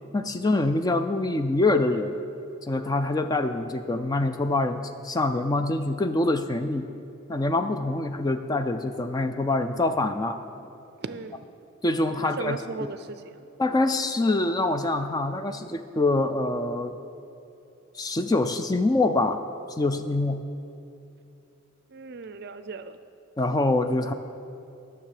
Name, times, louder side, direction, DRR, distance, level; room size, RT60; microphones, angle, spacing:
voice 1, 0.1-2.1 2.6-6.8 7.3-10.4 11.8-12.6 13.6-17.0 17.9-19.4 19.8-20.4 23.4-24.1, left 2 dB, 20° left, 8 dB, 0.3 m, -25 dB
voice 2, 11.0-11.4 12.2-13.5 21.9-22.9, right 4 dB, 50° right, 11 dB, 0.5 m, -36 dB
10.5 x 6.7 x 6.6 m, 2.7 s
head